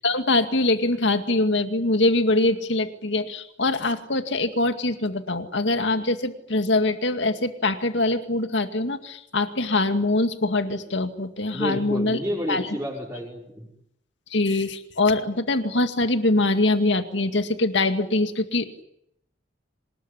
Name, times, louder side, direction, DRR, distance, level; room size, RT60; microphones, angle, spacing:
voice 1, 0.0-12.2 12.5-12.6 14.3-18.7, left 2 dB, 75° left, 8 dB, 2.2 m, -23 dB
voice 2, 11.5-13.7, equal, 10° right, -7 dB, 5.8 m, -30 dB
25.0 x 20.5 x 10.0 m, 0.79 s
head